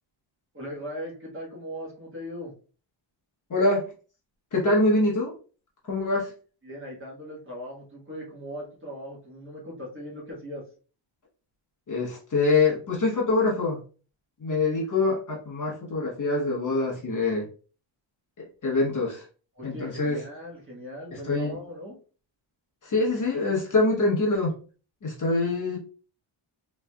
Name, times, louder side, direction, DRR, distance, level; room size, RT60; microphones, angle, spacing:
voice 1, 0.5-2.5 6.6-10.6 19.6-21.9, equal, 25° right, -3 dB, 1.3 m, -39 dB
voice 2, 3.5-3.8 4.5-5.3 5.9-6.3 11.9-13.8 14.4-17.4 18.4-19.2 19.6-20.2 21.1-21.6 22.8-24.5 25.0-25.8, left 2 dB, 40° left, -3 dB, 1.0 m, -24 dB
3.7 x 3.1 x 2.2 m, 0.38 s
wide cardioid pair, 170°, 50 cm